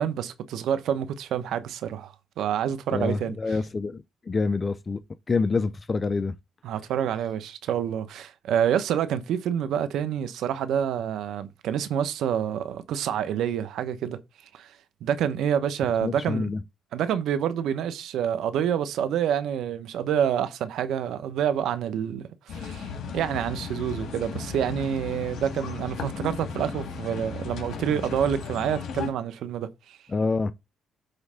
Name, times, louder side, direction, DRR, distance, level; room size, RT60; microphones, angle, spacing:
voice 1, 0.0-3.4 6.6-14.2 14.5-14.7 15.0-16.5 16.9-30.0, right 9 dB, 80° right, 0.9 m, -27 dB
voice 2, 2.9-5.0 5.3-6.3 16.0-16.6 30.1-30.5, left 4 dB, 30° left, 0.4 m, -27 dB
sound 1, 22.5-29.1, left 6 dB, 70° left, 1.7 m, -35 dB
7.8 x 3.2 x 5.6 m
cardioid pair, 90°, 0 cm